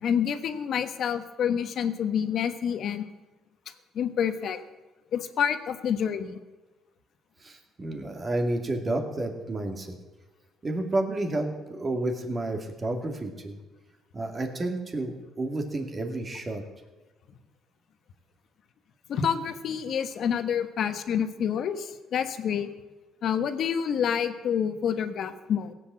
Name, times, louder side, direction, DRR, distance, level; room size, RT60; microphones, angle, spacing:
voice 1, 0.0-3.1 3.9-4.6 5.1-6.4 19.1-22.7 23.2-25.7, left 8 dB, 60° left, 10 dB, 1.2 m, -28 dB
voice 2, 7.4-10.0 10.6-13.6 14.1-16.6, right 2 dB, 30° right, 4 dB, 2.4 m, -30 dB
17.0 x 8.4 x 7.6 m, 1.1 s
cardioid pair, 100°, 0 cm